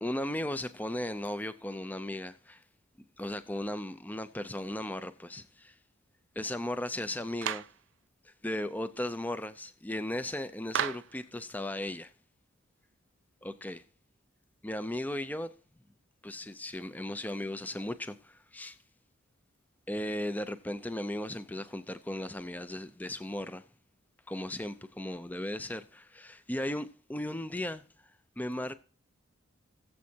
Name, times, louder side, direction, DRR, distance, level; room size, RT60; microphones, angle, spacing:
voice 1, 0.0-2.6 3.2-5.7 6.4-7.7 8.2-12.1 13.4-13.8 14.6-15.5 16.2-18.8 19.9-23.6 24.3-27.8 28.4-28.7, left 1 dB, 10° left, 0.4 m, -36 dB
Clapping, 7.4-7.8 10.7-11.2, right 9 dB, 60° right, 0.4 m, -32 dB
19.5 x 7.5 x 2.8 m
head